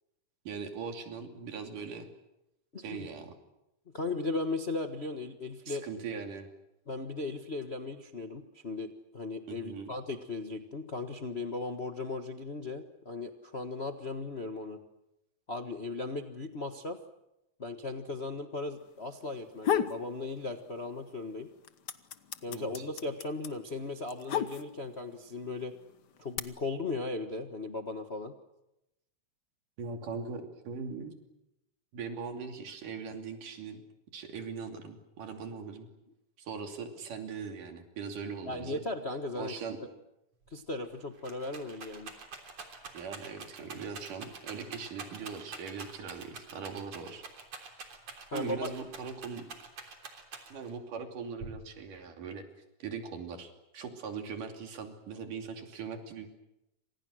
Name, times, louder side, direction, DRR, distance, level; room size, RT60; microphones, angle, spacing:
voice 1, 0.5-2.1 2.8-3.4 5.7-6.5 9.5-9.9 22.5-22.9 29.8-31.1 31.9-33.8 34.1-35.9 36.4-38.8 39.4-39.8 42.9-47.2 48.3-49.4 50.5-52.4 52.8-56.3, right 5 dB, 85° right, 5 dB, 4.4 m, -40 dB
voice 2, 2.7-3.1 3.9-5.9 6.9-14.8 15.5-17.0 17.6-21.5 22.4-25.7 26.2-28.3 38.4-39.5 40.5-42.1 48.3-48.7, left 3 dB, 40° left, 5 dB, 0.8 m, -37 dB
sound 1, 19.3-20.0 20.4-21.1 21.4-25.0 25.7-26.4, left 9 dB, 80° left, 0.9 m, -32 dB
Rattle, 40.5-40.6 40.8-50.8 51.4-52.0, right 4 dB, 55° right, 4.4 m, -46 dB
29.0 x 26.5 x 6.4 m, 0.89 s
omnidirectional pair, 3.6 m